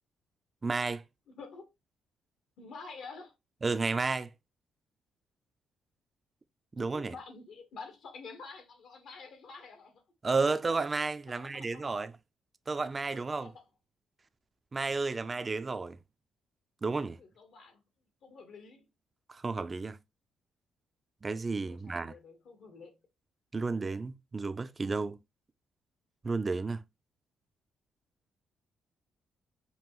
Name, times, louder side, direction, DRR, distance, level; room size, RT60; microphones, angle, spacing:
voice 1, 0.6-1.0 3.6-4.3 6.8-7.1 10.2-12.1 12.7-13.5 14.7-16.0 16.8-17.2 19.3-20.0 21.2-22.1 23.5-25.2 26.2-26.8, right 3 dB, 30° right, 0.4 m, -32 dB
voice 2, 1.3-1.7 2.6-3.3 6.9-9.9 11.3-12.0 13.1-13.6 17.2-17.8 18.2-18.8 21.7-23.0, left 4 dB, 70° left, 1.3 m, -48 dB
5.3 x 2.4 x 3.0 m
cardioid pair, 90°, 0 cm